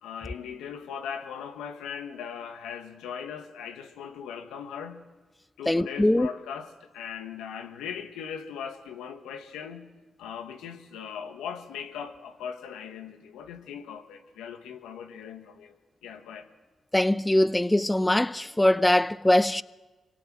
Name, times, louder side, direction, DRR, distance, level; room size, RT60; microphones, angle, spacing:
voice 1, 0.0-5.0 5.6-9.9 10.2-15.7 16.0-16.5, left 7 dB, 90° left, 1.6 m, -39 dB
voice 2, 5.7-6.3 16.9-19.6, left 1 dB, 15° left, 0.7 m, -22 dB
25.5 x 23.5 x 7.6 m
supercardioid pair, 45°, 0 cm